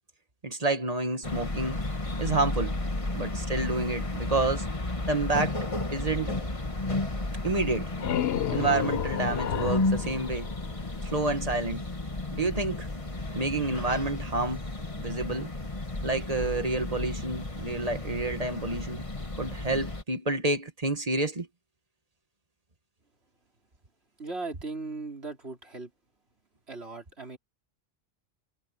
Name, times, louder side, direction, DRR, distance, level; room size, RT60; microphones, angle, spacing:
voice 1, 0.4-1.8 2.2-2.8 3.1-4.7 5.1-5.6 5.9-6.4 7.4-7.9 8.5-10.5 11.0-11.8 12.3-12.9 13.3-14.6 15.0-15.5 16.0-19.1 19.4-21.5, right 2 dB, 35° right, 1.8 m, -29 dB
sound 1, 1.2-20.0, left 2 dB, 30° left, 1.9 m, -33 dB
sound 2, 7.6-11.3, left 11 dB, 70° left, 0.9 m, -32 dB
voice 2, 24.2-25.9 26.7-27.4, right 3 dB, 75° right, 4.5 m, -38 dB
omnidirectional pair, 1.1 m